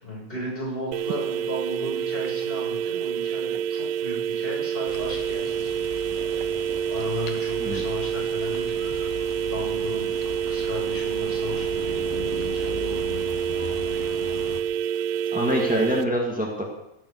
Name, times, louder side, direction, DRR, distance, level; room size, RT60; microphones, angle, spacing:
voice 1, 0.0-6.6 6.9-8.9 9.5-10.1 10.5-13.4, equal, 15° left, -4 dB, 5.9 m, -36 dB
sound 1, 0.9-16.0, right 8 dB, 85° right, 2.3 m, -27 dB
sound 2, 4.9-14.6, left 7 dB, 85° left, 2.6 m, -38 dB
voice 2, 15.3-16.6, equal, 10° right, 0 dB, 0.5 m, -25 dB
17.5 x 7.0 x 7.9 m, 0.87 s
omnidirectional pair, 3.8 m